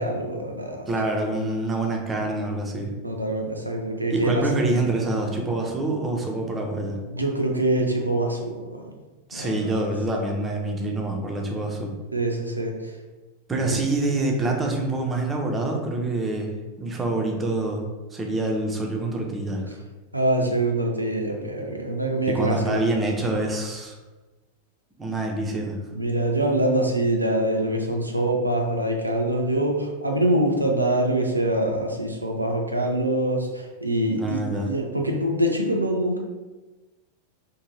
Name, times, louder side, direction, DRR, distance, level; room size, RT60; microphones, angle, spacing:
voice 1, 0.0-0.9 3.0-4.6 7.1-8.9 9.3-9.7 10.1-10.2 12.1-12.9 13.7-13.8 20.1-22.9 25.9-36.2, right 1 dB, 85° right, 2 dB, 0.4 m, -24 dB
voice 2, 0.9-2.9 4.1-7.0 9.3-11.9 13.5-17.8 18.1-19.7 22.3-24.0 25.0-25.8 34.1-34.7, right 2 dB, 15° right, 0 dB, 0.5 m, -26 dB
2.6 x 2.2 x 3.1 m, 1.2 s
figure-of-eight pair, 90°, 0 cm